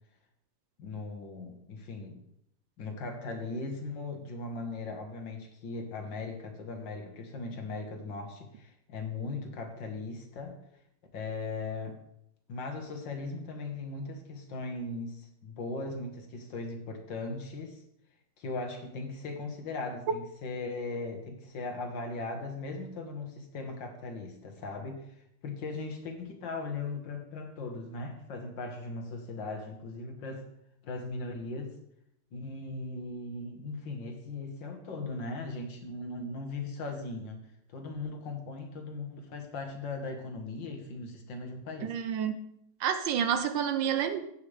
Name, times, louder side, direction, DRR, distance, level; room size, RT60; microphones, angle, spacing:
voice 1, 0.8-2.2 2.8-10.6 11.1-12.0 12.5-17.8 18.4-30.5 30.8-31.8 32.3-37.5 37.7-41.9, left 3 dB, 60° left, 4 dB, 2.0 m, -38 dB
voice 2, 41.8-42.4 42.8-44.2, right 8 dB, 70° right, 9 dB, 1.2 m, -29 dB
16.0 x 5.8 x 3.3 m, 0.75 s
omnidirectional pair, 2.4 m